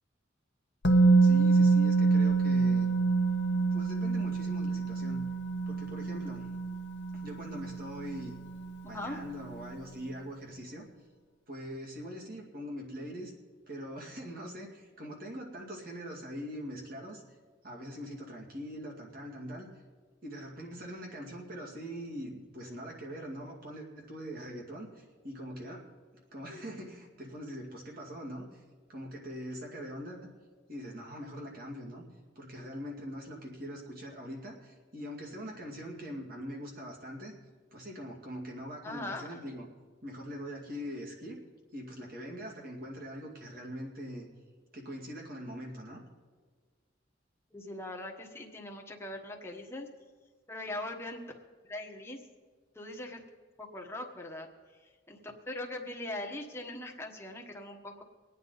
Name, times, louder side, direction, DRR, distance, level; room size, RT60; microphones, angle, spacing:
Musical instrument, 0.8-8.7 9.0-9.2, right 4 dB, 65° left, 0.9 m, -26 dB
voice 1, 1.2-2.9 3.5-5.2 5.7-6.5 7.1-8.3 8.8-10.9 11.5-13.3 13.7-17.2 17.6-19.7 20.2-25.8 26.3-28.6 28.9-30.3 30.7-32.1 32.4-37.3 37.7-39.7 40.0-41.4 41.7-44.3 44.7-46.0, equal, 50° right, -1 dB, 2.3 m, -42 dB
voice 2, 8.8-9.2 38.8-39.4 47.5-49.9 50.5-52.2 52.7-53.3 53.6-54.5 55.1-58.0, left 1 dB, 15° left, 2 dB, 1.3 m, -41 dB
24.5 x 9.3 x 4.1 m, 1.5 s
head